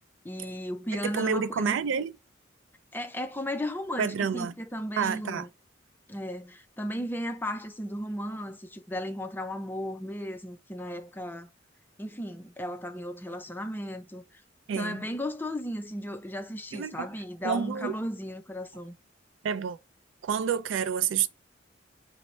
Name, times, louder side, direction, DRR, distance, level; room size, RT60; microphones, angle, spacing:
voice 1, 0.2-1.8 2.9-5.5 6.1-11.5 12.0-14.2 14.8-18.9, equal, 10° left, 0.4 m, -35 dB
voice 2, 0.9-2.1 4.0-4.5 5.0-5.5 14.7-15.1 16.7-17.1 17.4-18.0 19.4-19.8 20.2-21.3, right 7 dB, 80° right, 0.3 m, -29 dB
4.4 x 2.0 x 3.9 m
head